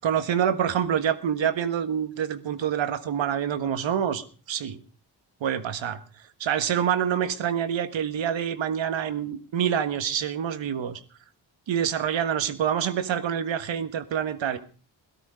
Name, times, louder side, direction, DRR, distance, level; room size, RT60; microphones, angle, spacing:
voice 1, 0.0-4.8 5.4-6.0 6.4-11.0 11.7-14.6, right 9 dB, 75° right, 10 dB, 1.6 m, -26 dB
17.5 x 13.0 x 5.1 m, 0.39 s
supercardioid pair, 50°, 45 cm